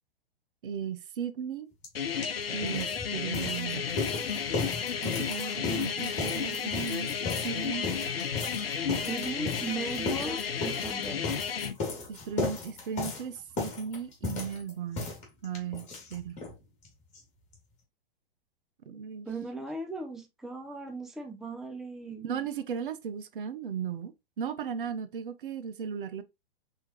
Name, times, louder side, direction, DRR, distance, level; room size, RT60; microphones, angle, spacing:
voice 1, 0.6-1.7 2.5-3.8 5.0-7.9 12.1-15.1 15.4-16.4 18.9-19.3 22.2-26.2, right 7 dB, 65° right, 0.8 m, -36 dB
sound 1, 1.8-1.9 2.2-16.6 16.8-16.9 17.1-17.2 17.5-17.6, left 3 dB, 25° left, 2.2 m, -36 dB
sound 2, 1.9-11.7, left 7 dB, 80° left, 0.7 m, -32 dB
voice 2, 9.1-11.4 19.3-22.4, right 3 dB, ahead, 0.6 m, -37 dB
4.6 x 3.6 x 2.9 m
hypercardioid pair, 115°, 29 cm